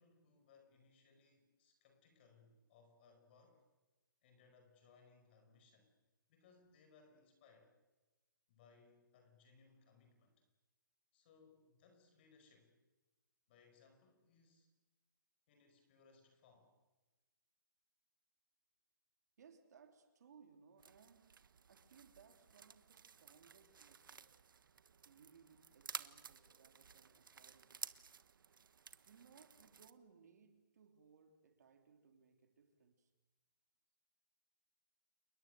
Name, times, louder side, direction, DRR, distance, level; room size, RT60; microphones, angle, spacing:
voice 1, 0.0-3.6 4.2-5.9 6.3-7.7 8.5-10.3 11.1-12.7 13.5-14.7 15.5-16.7, left 4 dB, 30° left, 6 dB, 5.0 m, -68 dB
voice 2, 19.4-21.4 21.7-24.4 25.0-27.9 29.0-33.1, right 6 dB, 50° right, 6 dB, 3.6 m, -66 dB
sound 1, 20.8-29.9, right 6 dB, 75° right, 1.4 m, -54 dB
29.0 x 22.0 x 7.9 m, 1.1 s
hypercardioid pair, 170°, 11 cm